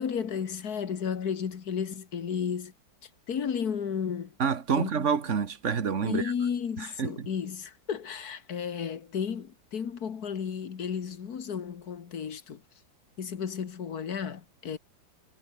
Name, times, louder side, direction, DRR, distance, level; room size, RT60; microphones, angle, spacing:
voice 1, 0.0-2.7 3.0-4.3 4.8-5.1 6.0-12.6 13.2-14.8, left 7 dB, 55° left, 2.0 m, -33 dB
voice 2, 4.4-6.3 6.8-7.3, right 6 dB, 40° right, 1.7 m, -28 dB
omnidirectional pair, 2.0 m